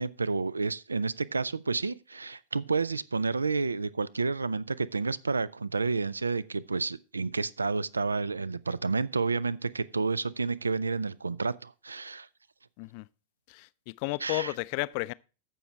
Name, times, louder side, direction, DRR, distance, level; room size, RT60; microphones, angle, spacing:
voice 1, 0.0-12.3 14.2-14.5, right 4 dB, 80° right, 0.4 m, -30 dB
voice 2, 14.0-15.1, left 22 dB, 45° left, 0.4 m, -32 dB
15.0 x 6.1 x 3.2 m
figure-of-eight pair, 90°, 0 cm